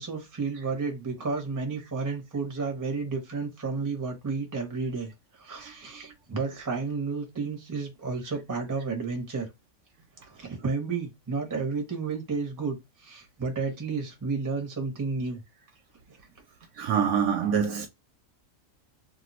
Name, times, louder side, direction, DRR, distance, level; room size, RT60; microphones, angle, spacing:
voice 1, 0.0-9.5 10.2-15.4, right 4 dB, 20° right, 0.6 m, -32 dB
voice 2, 16.8-17.9, right 7 dB, 70° right, 0.8 m, -25 dB
2.5 x 2.2 x 4.0 m
omnidirectional pair, 1.4 m